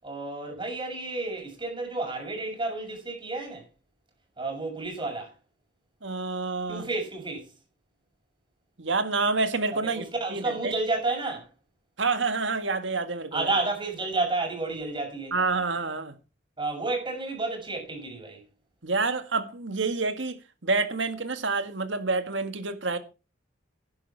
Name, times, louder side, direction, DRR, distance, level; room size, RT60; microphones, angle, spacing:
voice 1, 0.0-3.7 4.4-5.3 6.7-7.5 9.7-11.5 13.3-15.4 16.6-18.4, right 3 dB, 25° right, 6.5 m, -31 dB
voice 2, 6.0-6.9 8.8-10.1 10.3-10.7 12.0-13.5 15.3-16.1 18.8-20.4 20.6-23.0, right 3 dB, 75° right, 1.9 m, -28 dB
12.0 x 11.0 x 4.7 m
head